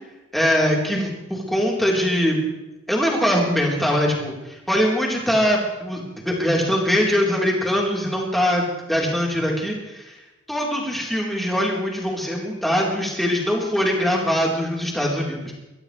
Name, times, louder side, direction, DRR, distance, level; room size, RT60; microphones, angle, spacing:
voice 1, 0.3-2.4 2.9-10.2 10.5-15.5, equal, ahead, -3 dB, 3.8 m, -22 dB
23.0 x 16.0 x 3.3 m, 1.0 s
head